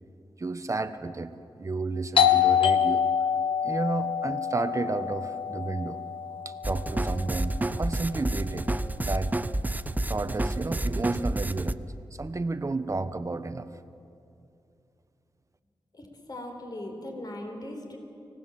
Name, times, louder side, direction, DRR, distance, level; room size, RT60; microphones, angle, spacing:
voice 1, 0.4-3.1 3.6-6.0 6.4-8.7 9.0-9.3 10.1-11.8 12.2-13.7, right 3 dB, 35° right, 10 dB, 1.2 m, -32 dB
Doorbell, 2.2-7.6, left 8 dB, 85° left, 1.1 m, -26 dB
sound 1, 6.6-11.7, right 1 dB, 20° right, 0.7 m, -29 dB
voice 2, 15.9-18.0, left 1 dB, 50° left, 2 dB, 4.4 m, -39 dB
25.0 x 18.0 x 7.6 m, 2.6 s
cardioid pair, 60°, 9 cm